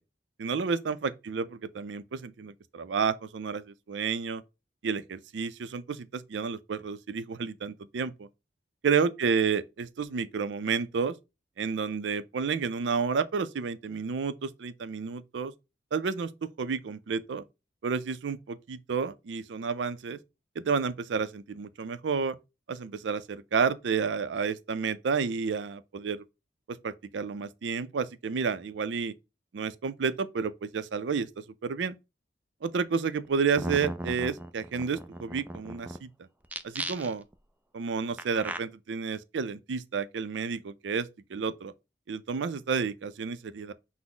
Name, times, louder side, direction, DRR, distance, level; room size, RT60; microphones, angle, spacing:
voice 1, 0.4-4.4 4.8-8.3 8.8-11.2 11.6-15.5 15.9-16.3 16.6-17.4 17.8-20.2 20.6-22.4 22.7-26.2 26.7-29.1 29.5-31.3 31.6-32.0 32.6-36.1 36.6-37.2 37.7-41.7 42.1-43.7, right 5 dB, 85° right, 0.4 m, -30 dB
sound 1, 33.2-33.3 33.6-36.0 36.4-37.3 38.2-38.6, right 1 dB, 10° right, 0.3 m, -36 dB
5.9 x 2.0 x 3.8 m
head